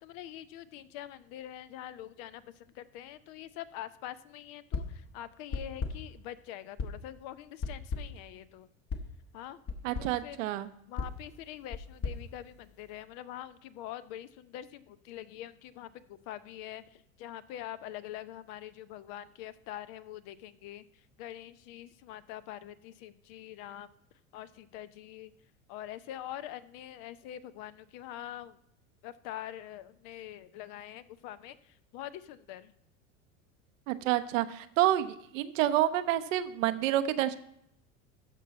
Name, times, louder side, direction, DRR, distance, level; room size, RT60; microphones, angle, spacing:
voice 1, 0.0-8.7 9.3-9.6 10.0-10.4 10.9-20.8 21.2-23.9 24.3-25.3 25.7-28.6 29.0-32.7, left 12 dB, 55° left, 14 dB, 0.7 m, -44 dB
sound 1, 4.7-5.1 5.5-6.2 6.8-7.1 7.6-8.3 8.9-9.2 9.7-10.2 11.0-13.0, left 4 dB, 35° left, 1.2 m, -38 dB
voice 2, 9.8-10.7 33.9-37.4, right 13 dB, 70° right, 11 dB, 0.8 m, -28 dB
14.0 x 5.4 x 4.1 m, 0.75 s
hypercardioid pair, 90°, 40 cm